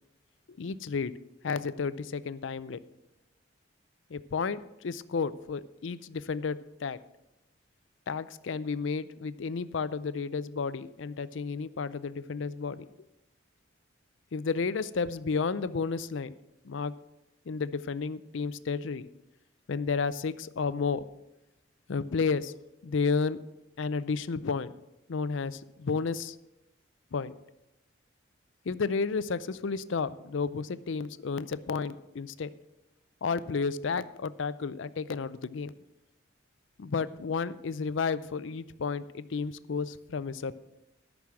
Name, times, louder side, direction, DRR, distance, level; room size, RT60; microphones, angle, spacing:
voice 1, 0.5-1.1 1.4-2.8 4.1-7.0 8.1-12.9 14.3-16.3 16.6-16.9 17.5-19.1 19.7-21.1 21.9-22.5 22.8-23.4 23.8-24.7 25.1-26.4 27.1-27.3 28.7-32.5 33.2-35.7 36.8-40.5, left 5 dB, 75° left, 16 dB, 0.5 m, -32 dB
13.0 x 6.2 x 6.1 m, 0.92 s
head